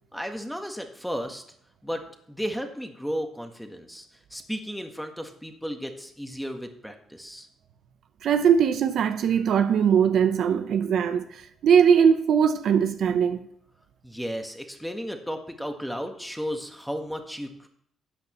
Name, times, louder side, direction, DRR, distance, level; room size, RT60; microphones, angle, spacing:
voice 1, 0.1-1.4 1.8-2.0 2.3-7.5 14.0-17.7, equal, ahead, 1.5 m, -34 dB
voice 2, 8.2-11.3 11.6-13.4, right 7 dB, 70° right, 0.7 m, -20 dB
12.5 x 8.1 x 3.1 m
cardioid pair, 90°, 0 cm